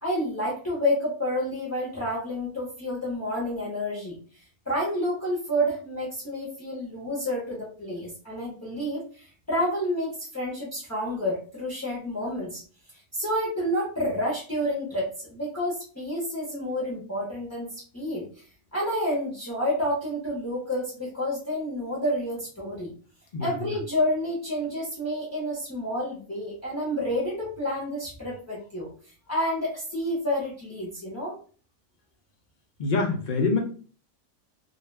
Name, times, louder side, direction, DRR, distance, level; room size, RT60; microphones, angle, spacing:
voice 1, 0.0-4.2 4.7-12.6 13.1-18.3 18.7-22.9 23.4-28.9 29.3-31.3, equal, 20° left, -5 dB, 0.5 m, -29 dB
voice 2, 23.3-23.7 32.8-33.6, left 4 dB, 70° left, 2 dB, 0.4 m, -25 dB
2.3 x 2.2 x 3.2 m, 0.41 s
omnidirectional pair, 1.4 m